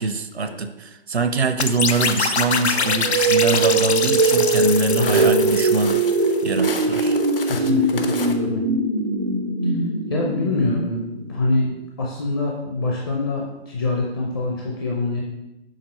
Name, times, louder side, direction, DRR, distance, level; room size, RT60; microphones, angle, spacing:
voice 1, 0.0-6.0 6.4-7.2, right 4 dB, 80° right, 10 dB, 0.7 m, -23 dB
sound 1, 1.6-6.4, left 5 dB, 90° left, 0.6 m, -25 dB
Walk footsteps, 1.9-8.3, left 4 dB, 60° left, 0.9 m, -34 dB
sound 2, 2.8-11.7, right 3 dB, 30° right, 0.4 m, -21 dB
voice 2, 4.9-5.6 7.4-8.6 9.6-9.7 10.1-11.0 11.3-11.7 12.0-15.2, left 2 dB, 20° left, -2 dB, 0.5 m, -25 dB
6.5 x 3.7 x 5.6 m, 0.95 s
figure-of-eight pair, 145°, 32 cm